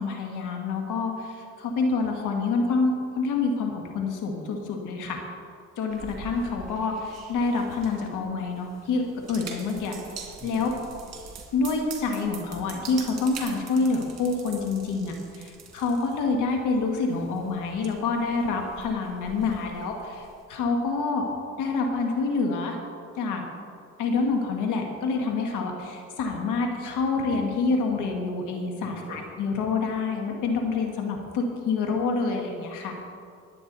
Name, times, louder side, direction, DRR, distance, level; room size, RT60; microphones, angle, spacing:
voice 1, 0.0-5.2 5.8-9.9 10.4-10.7 11.5-21.2 21.6-22.8 23.2-23.4 24.0-32.9, left 4 dB, 90° left, 2 dB, 1.8 m, -27 dB
sound 1, 5.9-20.5, right 5 dB, 60° right, 2.3 m, -45 dB
voice 2, 10.4-11.3 28.8-29.3, right 1 dB, 40° right, 1 dB, 2.8 m, -46 dB
19.5 x 8.5 x 4.0 m, 2.3 s
cardioid pair, 90°, 30 cm